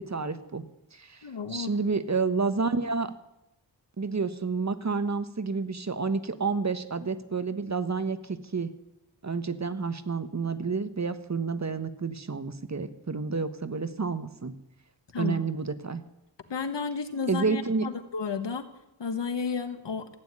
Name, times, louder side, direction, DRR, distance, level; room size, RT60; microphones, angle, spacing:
voice 1, 0.1-0.6 0.9-1.2 1.5-3.1 4.0-8.7 9.2-14.5 15.2-16.0 17.3-17.9, right 4 dB, 40° right, 12 dB, 1.2 m, -29 dB
voice 2, 1.2-1.7 15.1-15.4 16.5-18.6 19.0-20.1, left 5 dB, 85° left, 10 dB, 1.5 m, -32 dB
15.0 x 9.5 x 9.7 m, 0.88 s
wide cardioid pair, 70°, 42 cm